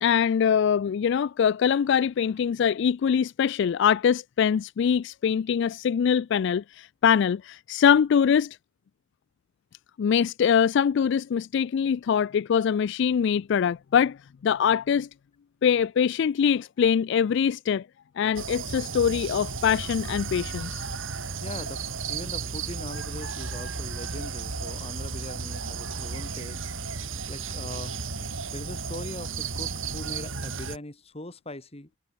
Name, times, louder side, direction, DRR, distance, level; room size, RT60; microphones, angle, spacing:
voice 1, 0.0-8.6 10.0-15.1 15.6-17.9 18.2-20.9, left 7 dB, 60° left, 0.3 m, -23 dB
sound 1, 18.4-30.8, right 5 dB, 75° right, 3.2 m, -34 dB
voice 2, 21.4-28.0 28.5-31.9, left 1 dB, 30° left, 2.5 m, -41 dB
head